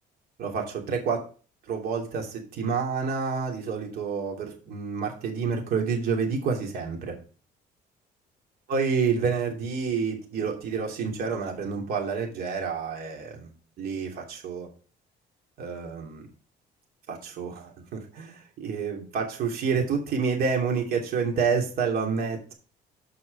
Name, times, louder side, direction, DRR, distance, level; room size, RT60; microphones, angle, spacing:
voice 1, 0.4-1.2 1.7-7.1 8.7-13.5 13.8-14.7 15.6-16.3 17.1-22.5, right 5 dB, 65° right, 1 dB, 2.9 m, -28 dB
7.8 x 5.9 x 5.3 m, 0.38 s
cardioid pair, 110°, 17 cm